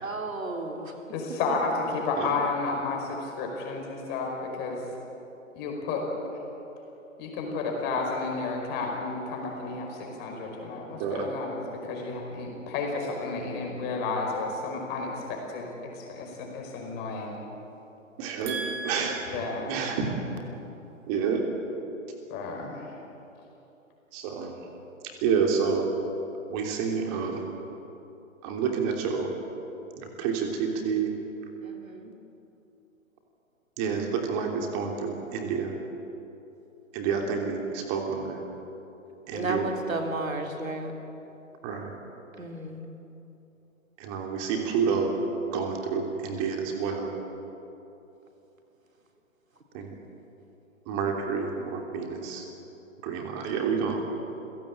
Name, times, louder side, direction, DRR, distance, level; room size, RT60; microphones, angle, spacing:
voice 1, 0.0-0.9 31.6-32.1 39.3-40.9 42.4-42.9, right 2 dB, 75° right, 3 dB, 3.5 m, -33 dB
voice 2, 1.1-4.8 5.5-6.0 7.2-15.7 15.9-17.4 19.3-19.8 22.3-22.9, left 3 dB, 25° left, 1 dB, 5.2 m, -32 dB
voice 3, 11.0-11.3 18.2-20.1 21.1-21.4 24.1-24.5 25.2-25.9 26.5-27.4 28.4-29.3 30.0-31.1 33.8-35.7 36.9-38.4 39.3-39.7 41.6-42.0 44.0-45.1 45.5-47.1 49.7-49.9 50.9-52.4 53.0-54.0, right 6 dB, 25° right, 2 dB, 3.2 m, -29 dB
28.5 x 17.0 x 8.8 m, 3.0 s
figure-of-eight pair, 130°, 40 cm